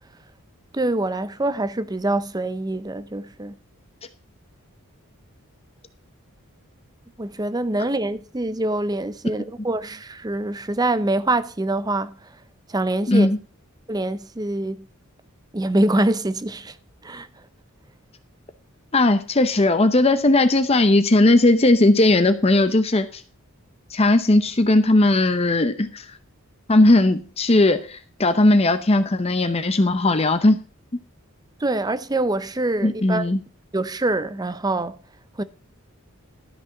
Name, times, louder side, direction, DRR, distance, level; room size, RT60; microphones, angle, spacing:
voice 1, 0.7-3.5 7.2-12.1 12.7-13.3 13.9-14.8 15.5-16.7 17.0-17.3 31.6-33.3 33.7-35.0 35.4-35.5, right 2 dB, 20° right, 0.6 m, -24 dB
voice 2, 13.1-13.4 18.9-23.2 23.9-26.0 26.7-30.6 32.8-33.4, left 2 dB, 30° left, 0.7 m, -18 dB
13.0 x 6.2 x 5.7 m
head